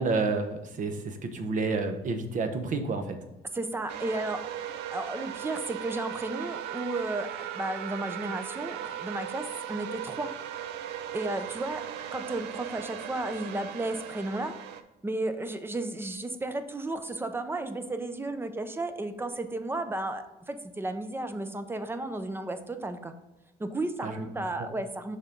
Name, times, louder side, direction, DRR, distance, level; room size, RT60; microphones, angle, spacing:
voice 1, 0.0-3.2 24.0-24.3 24.6-24.7, right 3 dB, 50° right, 7 dB, 0.9 m, -30 dB
voice 2, 3.5-4.4 4.9-10.3 11.1-11.8 12.1-14.5 15.0-23.1 23.6-25.2, right 2 dB, 15° right, 9 dB, 0.6 m, -33 dB
sound 1, 3.9-14.8, right 10 dB, 85° right, 0.5 m, -38 dB
6.3 x 3.7 x 5.2 m, 0.98 s
cardioid pair, 110°, 17 cm